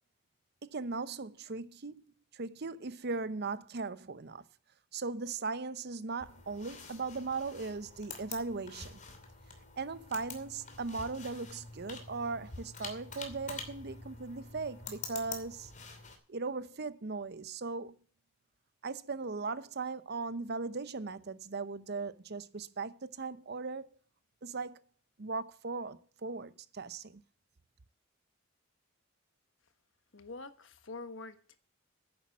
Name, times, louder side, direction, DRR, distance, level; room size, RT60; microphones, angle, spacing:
voice 1, 0.6-2.1 2.3-4.4 4.9-9.0 9.8-15.7 16.3-18.0 18.8-23.9 24.4-24.8 25.2-27.2, right 4 dB, 55° right, 0.8 m, -38 dB
sound 1, 6.2-16.2, left 4 dB, 35° left, 2.7 m, -47 dB
voice 2, 30.1-31.6, left 3 dB, 65° left, 1.3 m, -45 dB
10.5 x 8.8 x 7.2 m
head